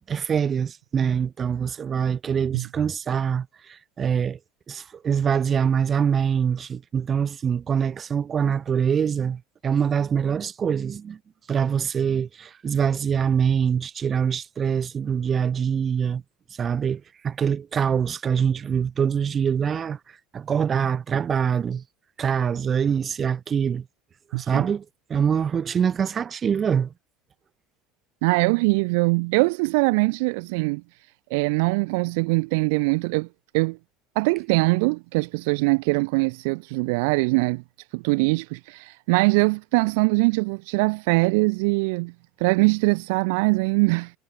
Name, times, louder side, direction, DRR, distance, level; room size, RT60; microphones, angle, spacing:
voice 1, 0.0-3.5 4.0-4.4 4.7-11.2 11.5-16.2 16.6-20.0 20.3-21.8 22.2-23.8 24.4-24.8 25.1-26.9, right 7 dB, 25° right, 1.8 m, -24 dB
voice 2, 24.3-24.7 28.2-30.8 31.3-33.3 33.5-33.8 34.2-37.6 37.9-42.1 42.4-44.1, right 28 dB, 75° right, 2.1 m, -22 dB
cardioid pair, 165°, 0 cm